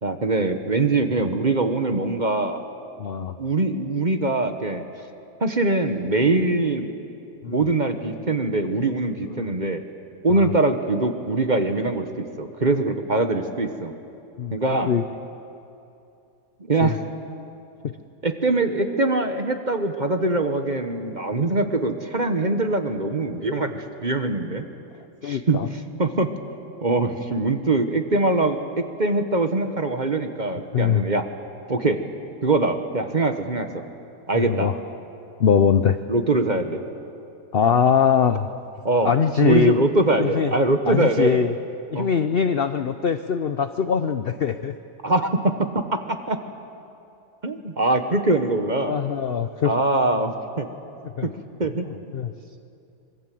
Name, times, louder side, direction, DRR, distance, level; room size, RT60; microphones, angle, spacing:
voice 1, 0.0-2.6 3.4-4.8 5.4-6.9 7.5-9.8 10.2-13.9 14.5-14.9 16.6-17.0 18.2-24.6 25.2-26.3 26.8-31.2 31.7-32.0 32.4-33.8 34.3-34.7 36.1-36.8 38.8-39.1 39.4-41.4 41.9-42.1 45.0-45.5 46.3-46.4 47.4-49.0 49.6-50.7 51.2-51.3 51.6-51.8, right 2 dB, 30° right, 7 dB, 1.1 m, -23 dB
voice 2, 3.0-3.4 7.4-7.6 9.3-9.5 10.3-10.5 14.4-14.6 14.9-15.0 16.8-17.0 17.8-17.9 25.2-25.7 30.7-31.0 34.3-34.8 35.4-36.0 37.5-38.5 39.0-39.8 40.2-40.5 40.9-41.5 41.9-44.7 48.8-49.7 51.2-51.3 52.1-52.3, left 7 dB, 60° left, 10 dB, 0.6 m, -22 dB
25.5 x 22.5 x 7.7 m, 2.7 s
omnidirectional pair, 1.8 m